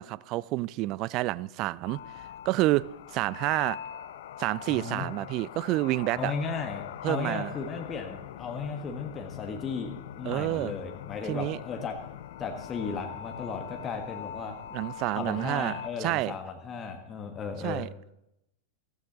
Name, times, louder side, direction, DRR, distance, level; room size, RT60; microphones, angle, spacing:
voice 1, 0.0-2.0 2.5-2.9 3.1-3.8 4.4-6.3 7.0-7.5 10.3-10.7 11.3-11.6 14.7-16.4 17.6-17.9, right 18 dB, 40° right, 22 dB, 0.3 m, -29 dB
sound 1, 1.8-15.9, left 11 dB, 55° left, 0.6 m, -42 dB
voice 2, 4.7-5.1 6.1-12.0 12.4-14.5 15.1-17.8, left 5 dB, 25° left, 3 dB, 1.5 m, -35 dB
16.0 x 15.5 x 3.0 m, 0.83 s
figure-of-eight pair, 90°, 0 cm